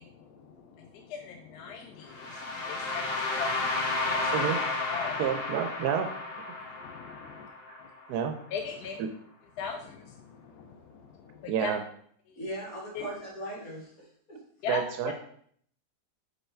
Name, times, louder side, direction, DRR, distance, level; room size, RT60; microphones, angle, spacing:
voice 1, 0.0-4.5 4.9-5.4 6.6-7.5 7.8-7.9 8.5-9.0 9.6-11.7 12.3-12.4 12.9-13.1 14.6-15.1, left 6 dB, 80° left, 3 dB, 1.1 m, -40 dB
sound 1, 2.1-8.1, left 3 dB, 45° left, 1.0 m, -32 dB
voice 2, 5.2-6.1 7.7-7.8 8.1-8.4 9.0-9.1 11.5-11.8 14.7-15.1, right 8 dB, 80° right, 6 dB, 1.1 m, -29 dB
voice 3, 12.3-14.4, right 1 dB, 60° left, -6 dB, 2.9 m, -39 dB
5.5 x 4.6 x 4.3 m, 0.63 s
omnidirectional pair, 1.7 m